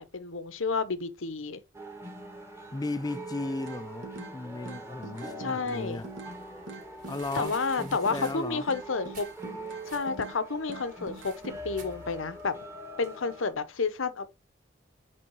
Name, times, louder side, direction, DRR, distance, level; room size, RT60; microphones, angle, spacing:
voice 1, 0.0-1.6 5.4-6.0 7.3-9.3 9.9-12.5 13.0-14.3, left 4 dB, 80° left, 0.8 m, -30 dB
sound 1, 1.7-13.5, right 1 dB, 15° right, 1.2 m, -43 dB
voice 2, 2.7-6.1 7.1-8.7, left 2 dB, 20° left, 0.4 m, -36 dB
sound 2, 3.7-4.4 4.7-6.4 6.7-8.4 8.7-10.4 10.7-11.6, right 3 dB, 65° right, 1.8 m, -43 dB
sound 3, 5.7-12.6, right 5 dB, 40° right, 2.4 m, -54 dB
7.7 x 3.5 x 4.7 m
head